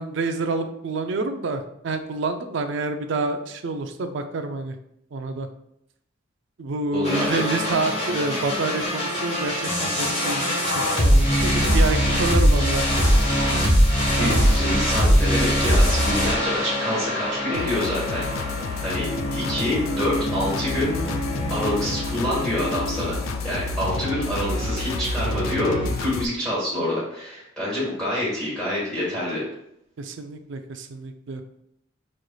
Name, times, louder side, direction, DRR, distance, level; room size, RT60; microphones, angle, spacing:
voice 1, 0.0-4.8 5.1-5.5 6.6-12.9 13.5-13.7 14.2-14.6 30.0-31.4, right 3 dB, 60° right, 7 dB, 0.4 m, -28 dB
voice 2, 6.9-7.4 14.2-21.0 21.5-23.2 23.4-29.4, left 1 dB, 5° left, -9 dB, 1.4 m, -27 dB
sound 1, 7.0-25.9, equal, 35° left, 1.3 m, -23 dB
sound 2, 17.5-26.3, left 6 dB, 85° left, 0.3 m, -32 dB
5.1 x 3.1 x 2.3 m, 0.78 s
head